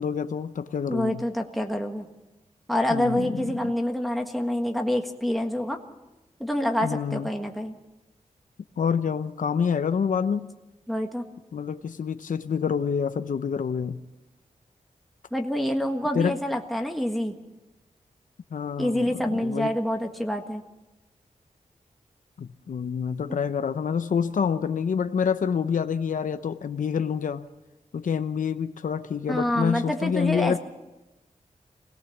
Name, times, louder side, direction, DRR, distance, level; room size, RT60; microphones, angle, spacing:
voice 1, 0.0-1.2 2.9-3.7 6.8-7.3 8.8-10.5 11.5-14.0 16.1-16.3 18.5-19.7 22.4-27.5 27.9-30.6, left 7 dB, 75° left, 10 dB, 0.7 m, -27 dB
voice 2, 0.9-2.1 2.7-5.8 6.4-7.7 10.9-11.2 15.3-17.3 18.8-20.6 29.3-30.6, left 1 dB, ahead, 2 dB, 1.6 m, -27 dB
25.0 x 18.0 x 7.2 m, 1.1 s
wide cardioid pair, 110°, 14 cm